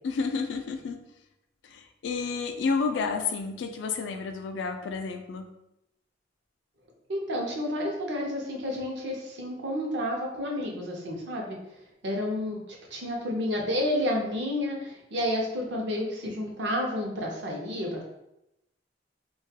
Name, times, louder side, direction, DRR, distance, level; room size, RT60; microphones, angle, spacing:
voice 1, 0.0-1.0 1.7-5.4, left 4 dB, 75° left, 6 dB, 0.3 m, -30 dB
voice 2, 7.1-11.6 12.0-12.6 12.9-18.0, left 1 dB, 70° right, 0 dB, 0.6 m, -30 dB
2.3 x 2.2 x 2.7 m, 0.87 s
head